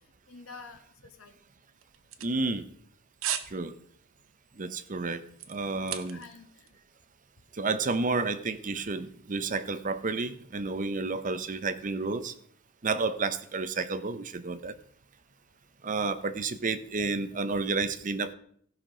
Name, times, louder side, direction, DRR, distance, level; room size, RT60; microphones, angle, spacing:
voice 1, 0.3-1.4 5.6-6.8, left 4 dB, 85° left, 5 dB, 1.4 m, -49 dB
sound 1, 1.8-2.9 3.2-3.5 3.9-4.1 4.6-6.4 6.7-6.8, right 10 dB, 80° right, 0.8 m, -36 dB
voice 2, 2.2-2.6 3.5-3.8 4.6-5.2 5.5-6.2 7.6-12.3 12.8-14.7 15.8-18.3, right 3 dB, 40° right, 12 dB, 0.7 m, -31 dB
15.5 x 6.0 x 5.0 m, 0.63 s
head